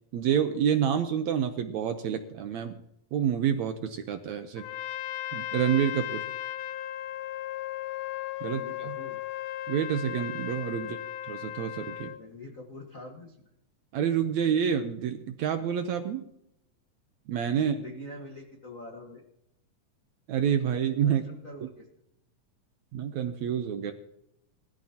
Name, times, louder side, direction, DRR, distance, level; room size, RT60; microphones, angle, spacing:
voice 1, 0.1-2.8 3.1-4.6 5.3-6.2 8.4-9.0 9.7-11.0 11.3-12.1 13.9-16.3 17.3-17.8 20.3-21.2 22.9-23.9, right 8 dB, 75° right, 7 dB, 1.8 m, -28 dB
Trumpet, 4.6-12.2, left 13 dB, 80° left, 1.8 m, -36 dB
voice 2, 8.4-9.2 10.7-11.0 12.2-13.5 17.5-19.2 21.0-21.9, left 1 dB, 60° left, 2 dB, 0.8 m, -45 dB
19.5 x 13.5 x 2.9 m, 0.77 s
omnidirectional pair, 4.0 m